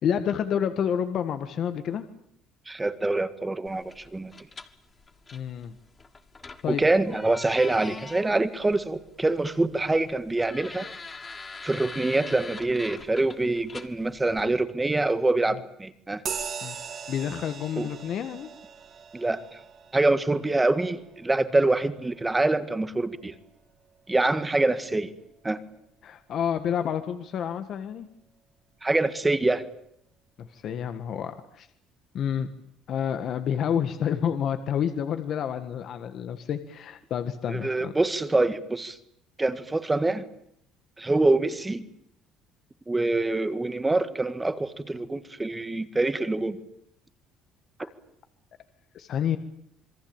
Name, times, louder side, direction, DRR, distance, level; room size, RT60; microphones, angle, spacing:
voice 1, 0.0-2.1 5.3-5.7 6.6-6.8 16.6-16.8 17.1-18.5 26.0-28.1 30.4-31.7 32.1-32.5 32.9-37.9 48.9-49.4, left 8 dB, 45° left, 9 dB, 1.7 m, -29 dB
voice 2, 2.7-4.3 6.7-10.9 11.6-16.2 17.8-17.9 19.1-19.4 19.9-23.3 24.1-25.1 25.4-25.6 28.8-29.6 37.5-39.0 39.4-40.2 41.0-41.8 42.9-46.6, right 2 dB, 10° right, 11 dB, 1.8 m, -25 dB
sound 1, 3.7-14.4, left 4 dB, 20° left, 1.9 m, -44 dB
sound 2, 16.3-24.2, right 7 dB, 40° right, 3.5 m, -41 dB
27.0 x 23.0 x 8.9 m, 0.73 s
cardioid pair, 150°, 0 cm